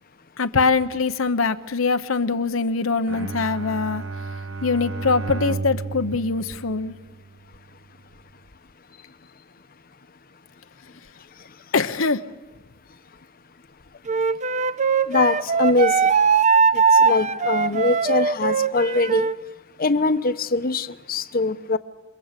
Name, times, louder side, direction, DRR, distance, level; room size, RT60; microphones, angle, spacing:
voice 1, 0.4-4.0 4.6-6.9 11.7-12.2, left 4 dB, 85° left, 9 dB, 1.0 m, -23 dB
Bowed string instrument, 3.1-7.5, right 3 dB, 70° right, 1.1 m, -32 dB
Wind instrument woodwind instrument, 14.1-19.4, right 5 dB, 35° right, 0.8 m, -20 dB
voice 2, 15.1-16.1 16.7-19.3 19.8-21.8, left 3 dB, 45° left, 11 dB, 0.9 m, -22 dB
28.0 x 23.5 x 8.3 m, 1.2 s
head